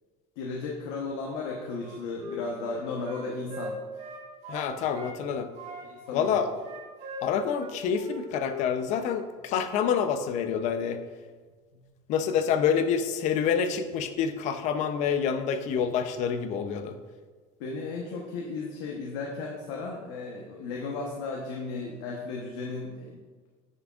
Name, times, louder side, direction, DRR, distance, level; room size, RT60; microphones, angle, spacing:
voice 1, 0.4-3.8 5.8-6.4 17.6-23.2, left 3 dB, 85° left, -1 dB, 1.0 m, -35 dB
Wind instrument woodwind instrument, 1.8-5.2 5.5-8.6 8.9-9.1, equal, 45° right, 1.8 m, -40 dB
voice 2, 4.5-5.5 6.1-6.5 7.2-11.0 12.1-16.9, left 7 dB, 50° left, 9 dB, 0.6 m, -27 dB
9.3 x 6.1 x 2.4 m, 1.5 s
cardioid pair, 150°, 15 cm